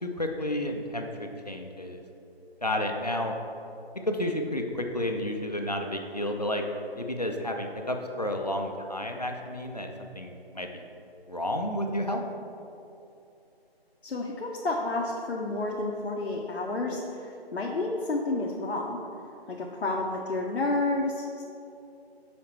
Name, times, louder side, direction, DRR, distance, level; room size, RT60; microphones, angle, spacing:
voice 1, 0.0-2.0 2.6-3.3 4.1-6.6 7.0-10.8 11.3-12.2, left 1 dB, 40° left, 3 dB, 0.4 m, -31 dB
voice 2, 14.0-19.0 19.5-21.4, left 2 dB, 85° left, -2 dB, 0.8 m, -30 dB
5.8 x 4.1 x 4.3 m, 2.8 s
figure-of-eight pair, 175°, 31 cm